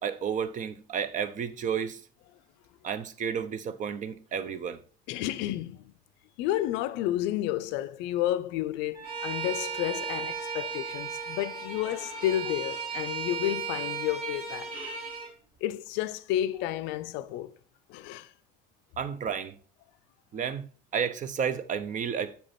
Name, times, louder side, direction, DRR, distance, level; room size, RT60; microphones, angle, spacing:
voice 1, 0.0-2.0 2.8-4.8 19.0-19.6 20.3-22.5, right 7 dB, 40° right, 0.7 m, -32 dB
voice 2, 5.1-5.9 6.4-14.7 15.6-17.5 17.9-18.3, left 13 dB, 65° left, 0.5 m, -31 dB
Wind instrument woodwind instrument, 8.9-12.6, right 3 dB, 75° right, 3.7 m, -45 dB
Bowed string instrument, 9.0-15.3, right 5 dB, 60° right, 3.3 m, -35 dB
6.8 x 5.0 x 4.2 m
hypercardioid pair, 70°, 20 cm